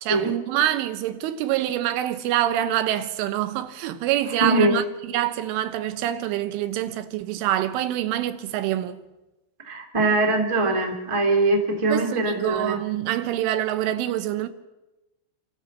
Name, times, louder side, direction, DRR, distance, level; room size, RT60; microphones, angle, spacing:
voice 1, 0.0-9.0 11.9-14.5, right 12 dB, 85° right, 3.6 m, -26 dB
voice 2, 4.4-4.8 9.6-12.8, right 2 dB, 10° right, 1.4 m, -22 dB
28.5 x 13.5 x 7.3 m
omnidirectional pair, 5.5 m